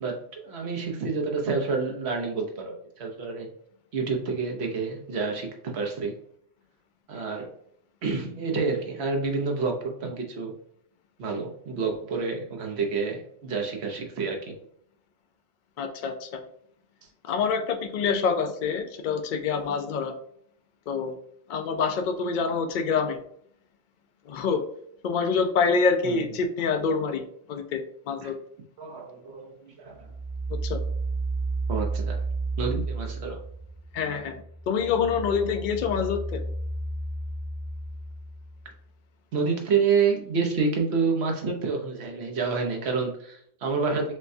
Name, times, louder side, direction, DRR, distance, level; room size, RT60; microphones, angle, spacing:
voice 1, 0.0-3.5 3.9-6.1 7.1-7.5 8.0-10.5 11.2-14.5 26.0-26.2 28.2-28.3 28.8-30.1 31.7-32.2 32.6-33.4 39.3-44.2, right 4 dB, 65° right, 2 dB, 1.1 m, -28 dB
voice 2, 15.8-16.4 17.3-20.1 20.9-21.2 21.5-23.2 24.3-24.6 25.0-28.4 30.5-30.8 33.9-36.4, left 5 dB, 55° left, 6 dB, 0.6 m, -26 dB
sound 1, 30.0-33.9 34.3-38.9, right 3 dB, 40° right, 1.3 m, -32 dB
6.3 x 2.2 x 2.7 m, 0.66 s
omnidirectional pair, 1.2 m